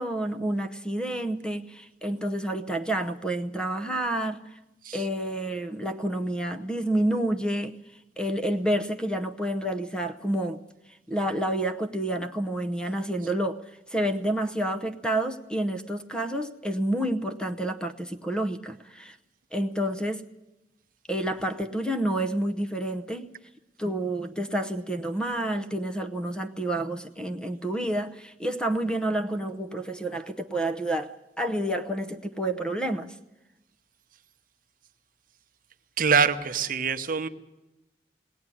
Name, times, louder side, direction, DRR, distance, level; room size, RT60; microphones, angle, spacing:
voice 1, 0.0-4.6 4.9-7.7 8.2-10.6 11.1-13.6 13.9-19.2 19.5-20.2 21.1-23.3 23.8-33.2, right 1 dB, 5° left, 6 dB, 0.7 m, -29 dB
voice 2, 36.0-37.3, right 6 dB, 50° right, 8 dB, 1.0 m, -24 dB
20.5 x 17.5 x 9.9 m, 0.98 s
head